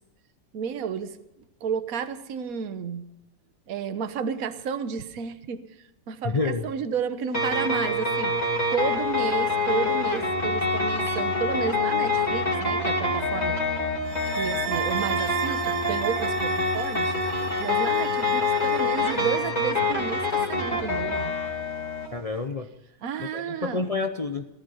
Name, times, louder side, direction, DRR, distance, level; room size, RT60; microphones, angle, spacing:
voice 1, 0.5-1.2 1.6-3.1 3.7-5.7 6.1-8.4 8.7-13.6 14.1-17.1 17.6-21.3 23.0-23.9, right 7 dB, 55° right, 10 dB, 1.4 m, -32 dB
voice 2, 6.2-6.7 22.1-22.7 23.2-24.5, left 3 dB, 65° left, 6 dB, 0.3 m, -28 dB
sound 1, 7.3-22.1, left 2 dB, 20° left, 3.1 m, -26 dB
sound 2, 14.0-19.4, right 11 dB, 85° right, 1.5 m, -36 dB
18.5 x 13.5 x 5.6 m, 0.96 s
omnidirectional pair, 2.0 m